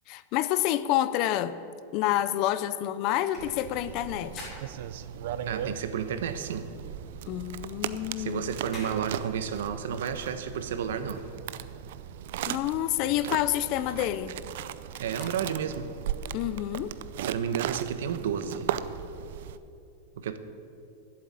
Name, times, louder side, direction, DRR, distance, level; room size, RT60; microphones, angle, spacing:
voice 1, 0.1-1.5 1.9-4.5 7.3-8.5 12.5-14.3 16.3-16.9, left 13 dB, 35° left, 15 dB, 0.4 m, -28 dB
sound 1, 1.9-5.5 5.9-11.9 12.2-16.0 16.5-16.6, left 1 dB, 15° left, 3.8 m, -51 dB
sound 2, 3.4-19.6, right 10 dB, 55° right, 0.5 m, -37 dB
voice 2, 5.5-6.7 8.2-11.2 15.0-15.9 17.2-18.7 20.2-20.4, right 8 dB, 80° right, 11 dB, 0.9 m, -31 dB
12.0 x 7.8 x 8.7 m, 2.7 s
supercardioid pair, 175°, 0 cm